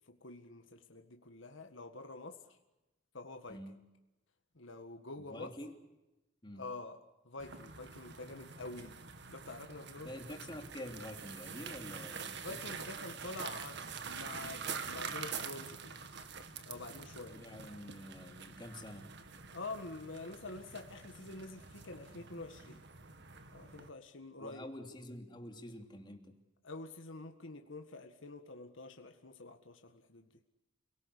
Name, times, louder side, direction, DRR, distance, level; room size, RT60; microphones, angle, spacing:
voice 1, 0.1-2.4 3.1-3.6 4.6-5.5 6.6-7.0 7.3-9.0 9.3-10.1 12.3-16.0 16.7-17.4 19.5-22.8 23.5-24.7 26.6-30.3, left 2 dB, 70° left, 5 dB, 1.8 m, -47 dB
voice 2, 5.2-5.7 6.4-6.7 10.0-12.8 17.3-19.1 24.4-26.4, left 1 dB, 25° left, 4 dB, 3.1 m, -48 dB
sound 1, 7.4-23.9, right 6 dB, 60° right, 1.9 m, -46 dB
29.5 x 18.0 x 8.5 m, 1.0 s
head